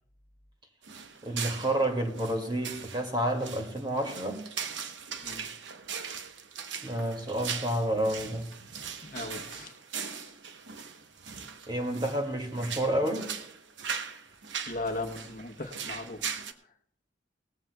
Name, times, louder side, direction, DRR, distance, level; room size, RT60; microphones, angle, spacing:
sound 1, 0.8-16.5, right 6 dB, 70° right, 0.9 m, -40 dB
voice 1, 1.2-4.4 6.8-8.5 11.7-13.3, right 1 dB, 25° right, 2 dB, 2.1 m, -30 dB
voice 2, 9.0-9.7 10.1-10.3 14.7-16.4, left 2 dB, 45° left, 4 dB, 0.9 m, -38 dB
19.0 x 14.5 x 2.3 m, 0.65 s
head